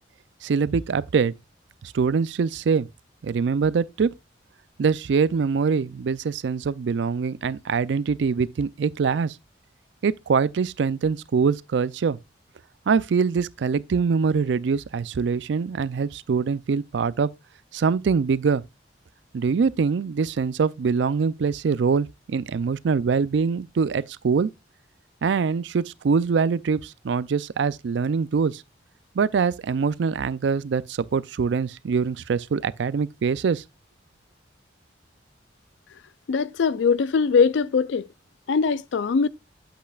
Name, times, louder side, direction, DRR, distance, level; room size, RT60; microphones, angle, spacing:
voice 1, 0.4-1.3 1.8-2.9 3.2-4.1 4.8-9.4 10.0-12.2 12.9-17.3 17.7-18.6 19.3-24.5 25.2-28.6 29.2-33.6, right 5 dB, 75° right, 0.4 m, -23 dB
voice 2, 36.3-38.1 38.5-39.3, left 5 dB, 80° left, 0.4 m, -21 dB
8.5 x 8.0 x 2.3 m
head